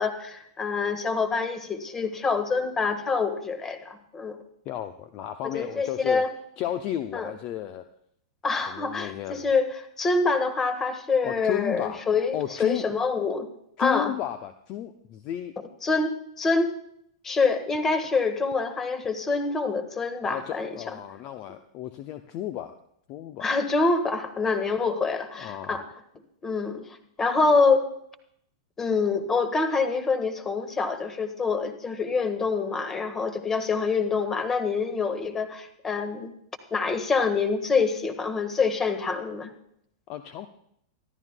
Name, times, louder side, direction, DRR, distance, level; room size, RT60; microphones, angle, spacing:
voice 1, 0.0-4.4 5.5-6.3 7.1-7.3 8.4-13.5 13.8-14.1 15.8-16.7 17.2-20.7 23.4-25.8 26.4-26.9 27.2-27.9 28.8-36.3 36.7-39.5, left 4 dB, 15° left, 10 dB, 1.4 m, -26 dB
voice 2, 4.6-6.2 6.6-7.9 8.7-9.5 11.2-12.1 12.3-12.9 13.8-15.6 20.3-22.8 23.1-23.5 25.3-25.8 40.1-40.5, left 12 dB, 35° left, 10 dB, 0.6 m, -33 dB
25.0 x 12.0 x 2.2 m, 0.71 s
figure-of-eight pair, 95°, 2 cm